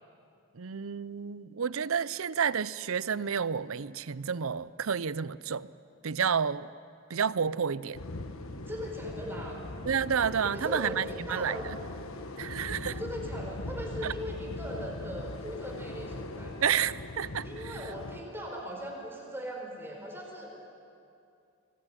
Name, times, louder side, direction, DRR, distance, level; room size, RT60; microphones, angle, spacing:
voice 1, 0.6-5.7 6.0-6.7 7.1-8.0 9.9-11.8 12.4-13.0 14.0-14.1 16.6-17.8, right 7 dB, 75° right, 18 dB, 0.6 m, -30 dB
sound 1, 7.9-18.2, left 2 dB, 75° left, 1.4 m, -40 dB
voice 2, 8.7-9.6 10.5-11.7 12.9-16.5 17.4-20.6, equal, 10° right, 0 dB, 4.7 m, -39 dB
25.0 x 21.0 x 10.0 m, 2.6 s
head